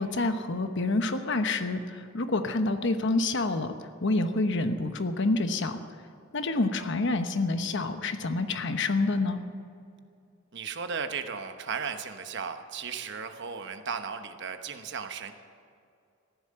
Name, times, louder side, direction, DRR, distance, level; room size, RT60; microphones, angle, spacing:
voice 1, 0.0-3.7 4.0-5.8 6.3-9.4, left 2 dB, 60° left, 8 dB, 1.0 m, -27 dB
voice 2, 10.5-15.3, right 6 dB, 60° right, 8 dB, 1.0 m, -35 dB
15.0 x 11.0 x 7.7 m, 2.5 s
head